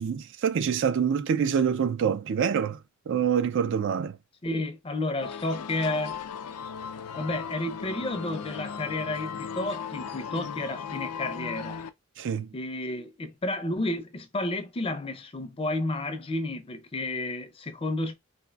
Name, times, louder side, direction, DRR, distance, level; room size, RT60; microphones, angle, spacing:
voice 1, 0.0-2.8 3.1-4.2 12.2-12.5, right 7 dB, 55° right, 0.4 m, -26 dB
voice 2, 4.4-6.2 7.2-11.9 12.5-18.1, left 2 dB, 25° left, 0.5 m, -31 dB
sound 1, 5.2-11.9, left 7 dB, 85° left, 0.5 m, -37 dB
4.2 x 2.5 x 2.3 m
head